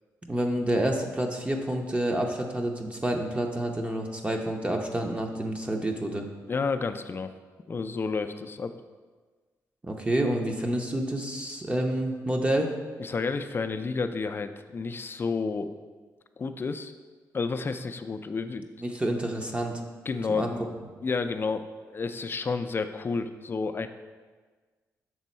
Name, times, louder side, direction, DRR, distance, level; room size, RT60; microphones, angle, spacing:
voice 1, 0.3-6.3 9.8-12.7 18.8-19.8 20.3-20.5, right 1 dB, 20° right, 2 dB, 0.6 m, -28 dB
voice 2, 6.5-7.3 7.7-8.7 13.0-15.7 16.4-16.9 17.3-18.7 20.1-20.7 21.0-21.7 21.9-23.9, left 4 dB, 35° left, 9 dB, 0.4 m, -30 dB
6.1 x 3.6 x 4.2 m, 1.4 s
cardioid pair, 75°, 6 cm